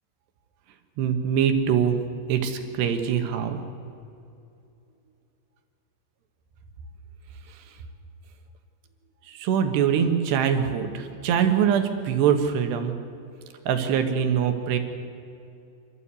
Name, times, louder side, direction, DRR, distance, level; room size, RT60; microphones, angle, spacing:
voice 1, 1.0-2.0 2.3-3.6 9.3-12.9 13.7-14.8, right 8 dB, 80° right, 6 dB, 3.6 m, -23 dB
27.0 x 13.0 x 8.3 m, 2.7 s
omnidirectional pair, 4.9 m